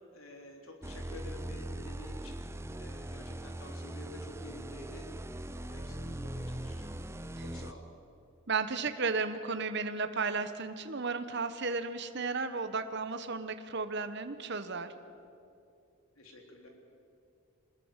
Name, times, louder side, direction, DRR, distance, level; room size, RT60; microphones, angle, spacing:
voice 1, 0.1-2.4 2.7-5.1 5.5-6.9 7.4-7.9 16.2-16.7, left 1 dB, 85° left, 2 dB, 3.6 m, -49 dB
sound 1, 0.8-7.7, right 1 dB, 15° right, 0.5 m, -41 dB
voice 2, 8.5-14.9, right 4 dB, 55° right, 9 dB, 1.1 m, -34 dB
24.5 x 20.5 x 7.4 m, 2.5 s
head